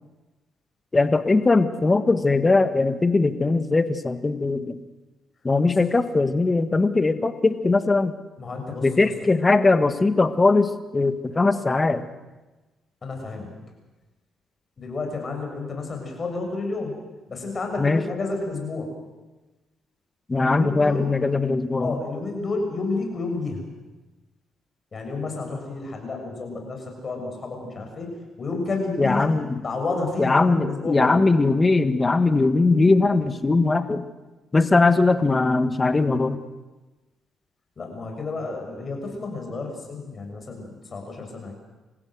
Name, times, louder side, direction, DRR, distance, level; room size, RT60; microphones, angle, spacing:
voice 1, 0.9-4.8 5.4-8.1 8.8-12.0 17.8-18.0 20.3-22.0 29.0-29.5 30.2-34.1 34.5-36.4, left 3 dB, 25° left, 10 dB, 1.6 m, -20 dB
voice 2, 8.4-9.1 13.0-13.5 14.8-17.0 17.3-18.9 20.3-21.1 21.8-23.6 24.9-29.3 29.6-31.2 37.8-41.5, left 3 dB, 40° left, 3 dB, 6.9 m, -31 dB
27.0 x 16.0 x 7.9 m, 1.2 s
cardioid pair, 90°, 0 cm